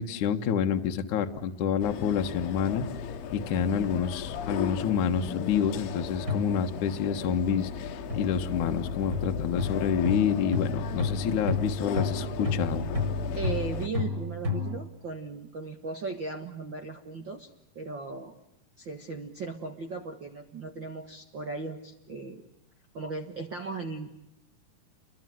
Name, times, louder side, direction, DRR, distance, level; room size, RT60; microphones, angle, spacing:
voice 1, 0.0-2.8 3.3-12.9, left 7 dB, 60° left, 5 dB, 2.5 m, -28 dB
sound 1, 1.8-13.9, left 7 dB, 80° left, 3.5 m, -36 dB
sound 2, 6.3-7.2 8.1-14.8, left 3 dB, 25° right, 5.3 m, -33 dB
voice 2, 13.3-17.5 17.7-18.3 18.8-22.5 22.9-24.1, right 4 dB, 55° right, 5 dB, 1.3 m, -37 dB
30.0 x 23.5 x 7.7 m, 0.85 s
omnidirectional pair, 4.6 m